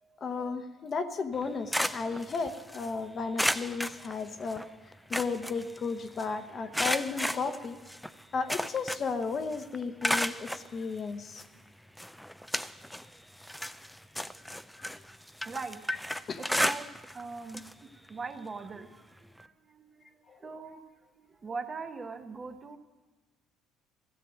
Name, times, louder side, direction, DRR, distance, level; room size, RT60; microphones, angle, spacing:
voice 1, 0.2-4.6 5.1-7.8 8.3-11.4 14.8-15.0 16.3-16.4 20.3-20.4, left 4 dB, 35° left, 8 dB, 0.9 m, -34 dB
sound 1, 1.3-2.9 3.4-4.6 4.9-6.2 6.7-9.2 9.5-10.7 11.4-11.5 12.0-13.1 13.4-17.2 17.5-17.7 18.1-18.2 19.4-19.5, equal, ahead, 0.4 m, -33 dB
voice 2, 15.4-15.8 16.6-16.9 17.1-20.1 20.4-20.8 21.2-22.8, right 4 dB, 30° right, 7 dB, 1.0 m, -41 dB
14.5 x 7.6 x 9.0 m, 1.3 s
supercardioid pair, 100°, 0 cm